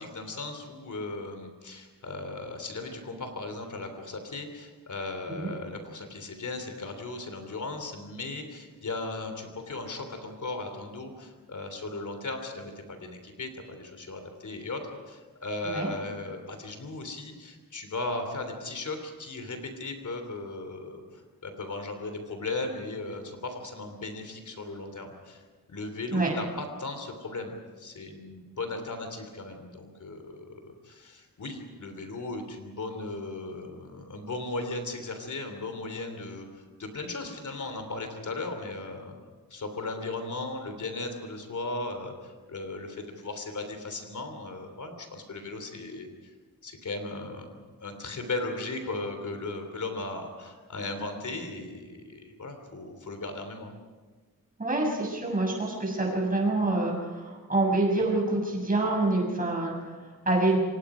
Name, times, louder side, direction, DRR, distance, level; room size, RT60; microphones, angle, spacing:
voice 1, 0.0-39.1 39.5-46.3 46.6-53.7, left 2 dB, 55° left, 6 dB, 3.2 m, -37 dB
voice 2, 54.6-60.6, right 2 dB, 25° right, -1 dB, 6.9 m, -27 dB
29.0 x 25.5 x 5.0 m, 1.4 s
wide cardioid pair, 165°, 35 cm